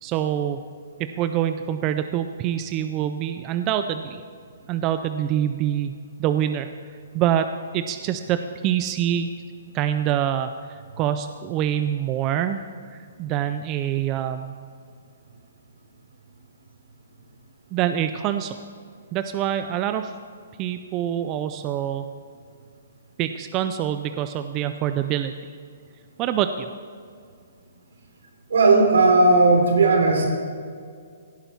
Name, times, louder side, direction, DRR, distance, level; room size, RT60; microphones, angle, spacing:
voice 1, 0.0-0.6 1.0-4.2 4.7-5.9 6.2-6.7 7.1-9.3 9.7-12.6 12.9-14.5 17.7-18.6 19.1-20.1 20.6-22.1 23.2-25.3 26.2-26.7, right 10 dB, 20° right, 9 dB, 0.4 m, -25 dB
voice 2, 28.5-30.3, right 3 dB, 80° right, 2 dB, 3.3 m, -16 dB
16.5 x 11.5 x 4.5 m, 2.2 s
hypercardioid pair, 170°, 0 cm